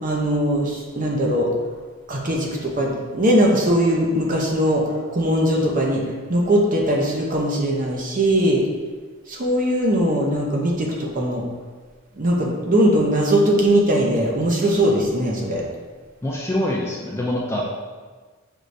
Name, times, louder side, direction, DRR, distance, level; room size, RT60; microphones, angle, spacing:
voice 1, 0.0-1.5 2.1-6.0 6.3-8.6 9.3-11.4 12.2-15.6, right 1 dB, 40° right, -1 dB, 0.7 m, -20 dB
voice 2, 16.2-17.6, left 1 dB, 10° left, -3 dB, 0.4 m, -24 dB
6.2 x 3.1 x 2.7 m, 1.4 s
head